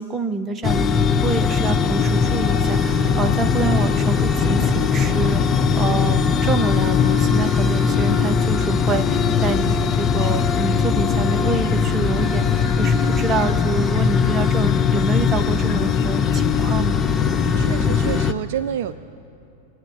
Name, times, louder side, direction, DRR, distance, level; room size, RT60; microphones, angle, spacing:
voice 1, 0.0-5.4 5.7-17.1, right 3 dB, 20° right, 7 dB, 0.9 m, -27 dB
sound 1, 0.6-18.3, left 6 dB, 20° left, 0.6 m, -19 dB
sound 2, 3.8-8.2, left 5 dB, 75° left, 3.1 m, -39 dB
sound 3, 9.6-18.2, left 6 dB, 50° left, 1.2 m, -40 dB
voice 2, 17.6-18.9, right 10 dB, 50° right, 13 dB, 0.4 m, -28 dB
27.0 x 9.2 x 4.6 m, 2.8 s
figure-of-eight pair, 90°, 0 cm